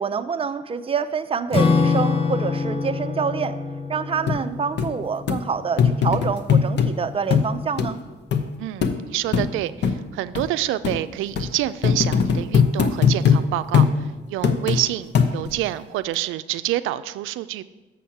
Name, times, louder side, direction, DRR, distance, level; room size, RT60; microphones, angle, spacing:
voice 1, 0.0-3.6 3.9-8.0, right 6 dB, 30° right, 9 dB, 0.5 m, -26 dB
Acoustic guitar / Strum, 1.5-6.3, left 4 dB, 30° left, 0.8 m, -25 dB
sound 1, 4.3-4.4 4.8-4.9 5.3-5.4 5.8-6.9 7.3-7.5 7.8-7.9 8.3-8.4 8.8-8.9 9.3-9.5 9.8-10.0 10.3-10.5 10.8-11.0 11.4-11.5 11.8-13.4 13.7-13.9 14.4-14.8 15.1-15.6 16.1-16.2, left 7 dB, 60° left, 0.9 m, -19 dB
voice 2, 8.6-17.6, right 14 dB, 90° right, 13 dB, 0.4 m, -27 dB
7.2 x 6.2 x 5.8 m, 1.2 s
cardioid pair, 90°, 20 cm